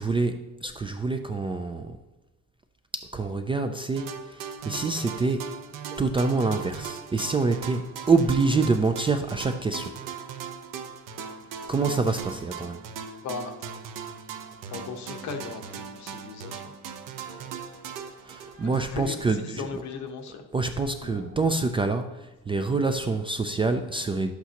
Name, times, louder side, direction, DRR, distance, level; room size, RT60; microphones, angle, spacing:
voice 1, 0.0-2.0 2.9-5.6 6.0-9.9 11.7-12.8 18.2-19.8 20.5-24.3, right 3 dB, 15° right, 7 dB, 0.3 m, -26 dB
sound 1, 4.0-19.4, right 7 dB, 85° right, 0.9 m, -39 dB
voice 2, 13.2-13.5 14.7-16.7 18.6-20.4, left 5 dB, 60° left, 5 dB, 1.1 m, -37 dB
sound 2, 17.2-18.1 18.5-19.1 19.8-21.5, left 3 dB, 35° left, 2.4 m, -50 dB
11.5 x 8.2 x 2.9 m, 1.0 s
cardioid pair, 165°, 32 cm